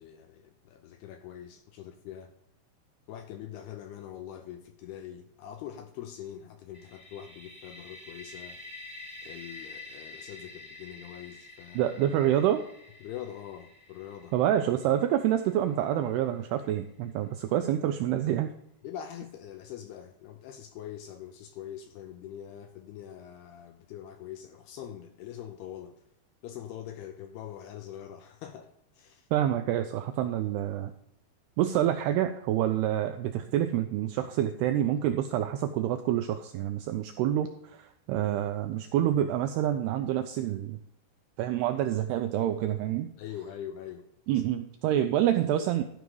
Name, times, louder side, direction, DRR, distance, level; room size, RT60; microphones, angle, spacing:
voice 1, 0.0-2.3 3.1-8.6 9.2-11.9 13.0-14.3 18.8-26.0 26.4-29.3 43.2-44.0 44.4-44.5, left 10 dB, 80° left, 6 dB, 2.4 m, -43 dB
sound 1, 6.7-16.4, left 3 dB, 5° right, 0.8 m, -48 dB
voice 2, 11.8-12.6 14.3-18.5 29.3-30.9 31.6-40.8 41.4-43.1 44.3-45.8, right 11 dB, 85° right, 7 dB, 2.3 m, -27 dB
12.5 x 5.3 x 4.7 m, 0.77 s
omnidirectional pair, 5.2 m